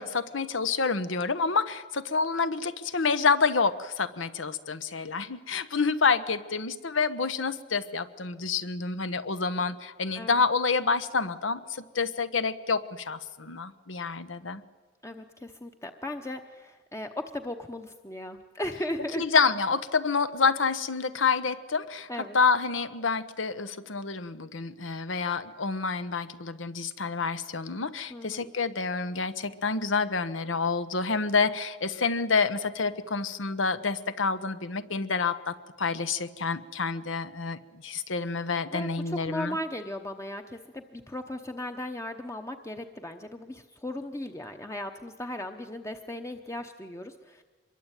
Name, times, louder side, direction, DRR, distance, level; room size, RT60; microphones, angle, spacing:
voice 1, 0.0-14.6 19.2-22.1 22.3-39.6, left 4 dB, 80° left, 12 dB, 1.2 m, -28 dB
voice 2, 15.0-19.3 22.1-22.4 28.1-28.5 38.7-47.4, left 1 dB, 15° left, 5 dB, 0.9 m, -37 dB
25.0 x 22.5 x 9.1 m, 1.3 s
head